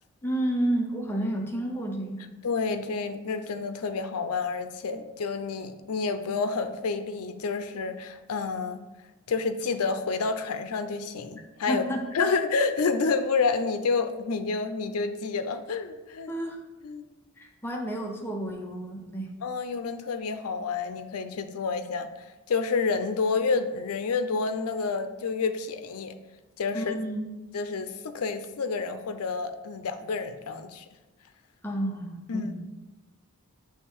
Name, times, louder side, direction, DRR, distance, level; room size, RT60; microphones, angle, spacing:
voice 1, 0.2-2.3 11.7-12.3 16.3-16.6 17.4-19.3 26.7-27.2 31.6-32.6, right 1 dB, 10° left, 1 dB, 0.5 m, -30 dB
voice 2, 2.4-8.8 9.3-11.8 12.1-16.3 16.8-17.1 19.4-26.1 26.6-27.0 27.5-30.8 32.3-32.5, left 4 dB, 80° left, 9 dB, 0.5 m, -29 dB
6.4 x 3.4 x 4.5 m, 1.1 s
head